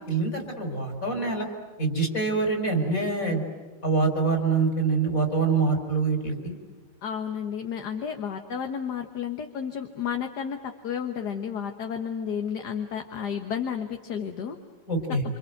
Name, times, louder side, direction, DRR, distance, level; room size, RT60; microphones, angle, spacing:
voice 1, 0.0-1.5 1.8-3.4 3.8-6.5 14.9-15.2, right 4 dB, 50° left, 3 dB, 4.9 m, -25 dB
voice 2, 7.0-14.6, left 7 dB, 65° left, 5 dB, 1.9 m, -32 dB
27.0 x 27.0 x 7.9 m, 1.4 s
omnidirectional pair, 1.9 m